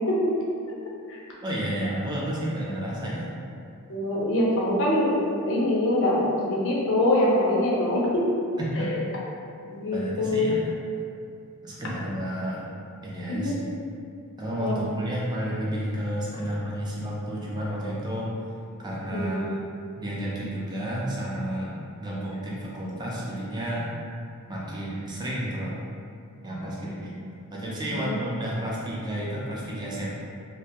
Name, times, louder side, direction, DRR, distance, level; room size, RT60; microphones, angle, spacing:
voice 1, 1.4-3.3 8.6-8.9 9.9-10.6 11.6-12.7 13.0-13.6 14.4-18.3 18.8-19.6 20.0-23.9 24.5-25.8 26.4-27.2 27.5-30.1, equal, 20° right, -6 dB, 0.4 m, -31 dB
voice 2, 3.9-8.3 8.8-9.0 9.7-10.5 13.3-13.5 14.6-14.8 19.1-19.5 27.9-28.1, left 1 dB, 60° left, -4 dB, 0.5 m, -24 dB
2.2 x 2.1 x 2.7 m, 2.4 s
head